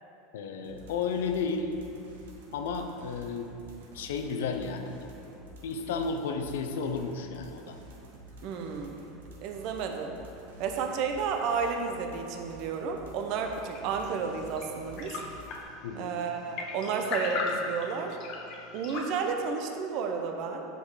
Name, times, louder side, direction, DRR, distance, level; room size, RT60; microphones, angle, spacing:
voice 1, 0.3-1.7 2.5-3.5 3.9-5.1 5.6-7.8 15.8-16.1, left 5 dB, 80° left, 5 dB, 0.6 m, -33 dB
sound 1, 0.6-15.6, right 1 dB, 90° right, 1.0 m, -50 dB
voice 2, 8.4-9.0 9.4-10.2 10.6-15.2 15.9-18.2 18.7-20.7, right 5 dB, 60° right, 4 dB, 0.7 m, -32 dB
sound 2, 13.6-19.1, left 3 dB, 50° left, 1.1 m, -38 dB
6.5 x 5.2 x 4.8 m, 2.8 s
hypercardioid pair, 105°, 0 cm